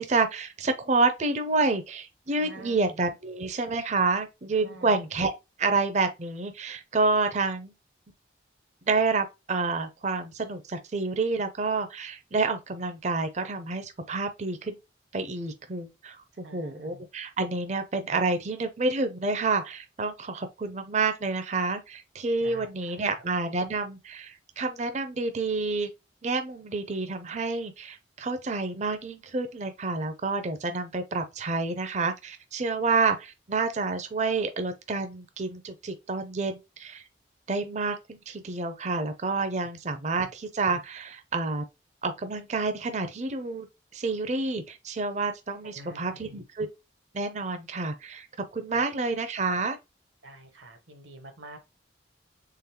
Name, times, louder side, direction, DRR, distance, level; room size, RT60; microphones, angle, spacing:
voice 1, 0.0-5.3 5.6-7.7 8.9-14.8 15.1-25.9 26.2-37.0 37.5-38.0 38.3-41.6 42.0-43.7 43.9-46.7 47.1-48.3 48.5-49.8, right 3 dB, 40° right, 0.5 m, -29 dB
voice 2, 2.4-2.9 4.6-4.9 16.4-17.0 22.4-22.7 45.6-46.3 50.2-51.6, right 1 dB, 80° right, 1.1 m, -47 dB
3.8 x 3.4 x 2.9 m
head